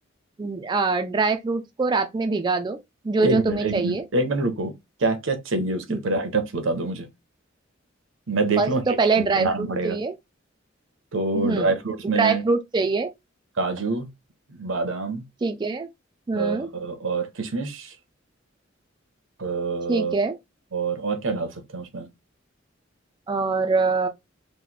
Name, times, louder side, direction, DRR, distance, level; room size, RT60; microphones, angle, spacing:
voice 1, 0.4-2.8 3.0-4.0 5.9-6.0 8.6-9.5 9.8-10.2 11.3-11.7 12.2-13.1 15.4-15.9 16.3-16.7 19.9-20.4 23.3-24.1, right 4 dB, 25° right, 0.3 m, -23 dB
voice 2, 3.2-4.7 5.0-7.1 8.3-8.8 9.2-10.0 11.1-12.4 13.6-14.1 14.6-15.2 16.3-17.9 19.4-20.1 20.7-22.1, right 3 dB, 90° right, 0.8 m, -26 dB
3.0 x 2.1 x 3.8 m
head